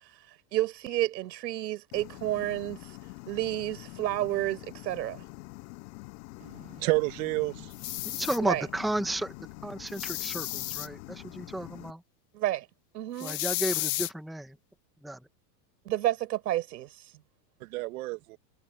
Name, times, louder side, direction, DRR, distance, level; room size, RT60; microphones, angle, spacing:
voice 1, 0.5-2.8 3.3-5.2 8.4-8.7 12.3-12.7 12.9-13.4 15.9-16.9, right 14 dB, 90° right, 5.1 m, -30 dB
sound 1, 1.9-11.9, left 25 dB, 55° left, 7.9 m, -46 dB
voice 2, 6.6-7.7 17.6-18.4, right 23 dB, 60° right, 2.4 m, -30 dB
sound 2, 7.7-8.4 9.9-10.9 13.2-14.1, left 19 dB, 25° left, 0.3 m, -33 dB
voice 3, 8.0-9.3 9.6-12.0 13.2-14.6 15.0-15.2, right 1 dB, ahead, 1.0 m, -33 dB
supercardioid pair, 155°, 49 cm